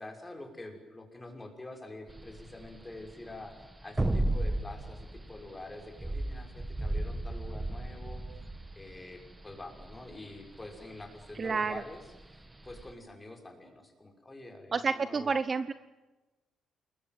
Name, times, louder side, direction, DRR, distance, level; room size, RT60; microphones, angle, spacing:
voice 1, 0.0-8.2 8.8-12.0 12.3-15.3, left 2 dB, 15° left, 3 dB, 6.1 m, -46 dB
sound 1, 2.1-12.9, right 1 dB, 10° right, 1.5 m, -35 dB
voice 2, 11.4-11.8 14.7-15.7, right 4 dB, 30° right, 13 dB, 1.0 m, -29 dB
28.5 x 22.0 x 9.5 m, 1.1 s
cardioid pair, 155°, 0 cm